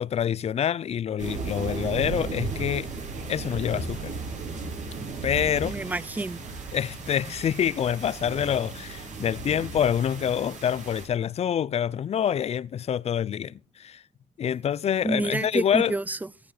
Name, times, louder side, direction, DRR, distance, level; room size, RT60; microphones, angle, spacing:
voice 1, 0.0-2.9 3.3-4.1 5.2-5.7 6.7-14.0 14.4-15.9, left 9 dB, 40° left, 0.5 m, -26 dB
sound 1, 1.2-11.1, right 4 dB, 45° right, 4.7 m, -35 dB
voice 2, 5.6-6.4 15.0-16.3, right 2 dB, 10° right, 0.7 m, -29 dB
16.5 x 9.5 x 4.0 m
cardioid pair, 110°, 17 cm